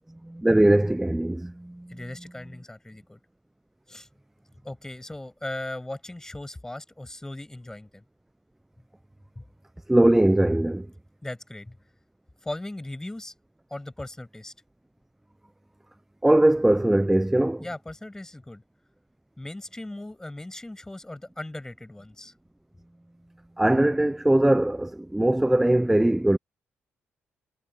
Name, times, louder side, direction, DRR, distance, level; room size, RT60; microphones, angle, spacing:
voice 1, 0.2-2.0 9.9-10.9 16.2-17.6 23.6-26.4, right 1 dB, 5° right, 0.5 m, -21 dB
voice 2, 1.9-3.2 3.9-4.1 4.6-8.0 9.4-9.5 11.2-11.8 12.4-13.3 13.7-14.5 17.6-18.6 19.4-22.3, left 1 dB, 10° left, 7.6 m, -38 dB
cardioid pair, 90°, 4 cm